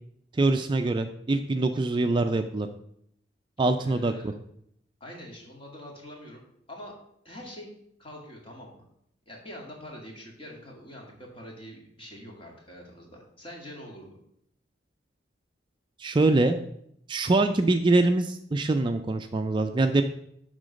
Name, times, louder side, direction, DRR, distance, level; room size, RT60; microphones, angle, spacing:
voice 1, 0.4-2.7 3.6-4.1 16.0-16.6 17.1-20.0, right 2 dB, 25° right, 7 dB, 0.4 m, -24 dB
voice 2, 3.8-4.3 5.0-6.4 6.7-7.0 7.2-7.7 8.0-8.8 9.3-14.2, equal, 30° left, -1 dB, 2.1 m, -44 dB
11.5 x 3.8 x 5.2 m, 0.73 s
head